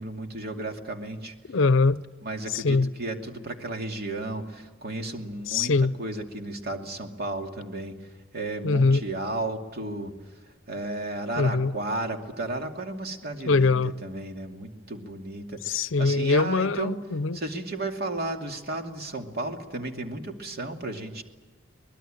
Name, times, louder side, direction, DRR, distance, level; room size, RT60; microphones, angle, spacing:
voice 1, 0.0-1.3 2.2-5.7 6.0-8.0 8.3-10.1 10.7-17.0 17.3-21.2, right 2 dB, 50° right, 2.6 m, -33 dB
voice 2, 1.5-2.0 2.5-2.9 5.5-5.9 8.6-9.0 11.4-11.7 13.4-13.9 15.6-17.4, left 3 dB, 70° left, 0.7 m, -22 dB
24.0 x 20.5 x 9.0 m
head